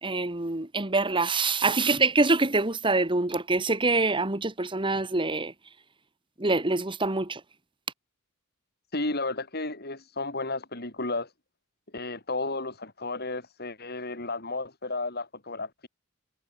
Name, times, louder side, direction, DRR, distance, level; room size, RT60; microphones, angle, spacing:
voice 1, 0.0-5.5 6.4-7.4, right 3 dB, 25° right, 1.7 m, -25 dB
voice 2, 8.9-11.3 11.9-15.9, left 2 dB, 50° left, 7.2 m, -33 dB
head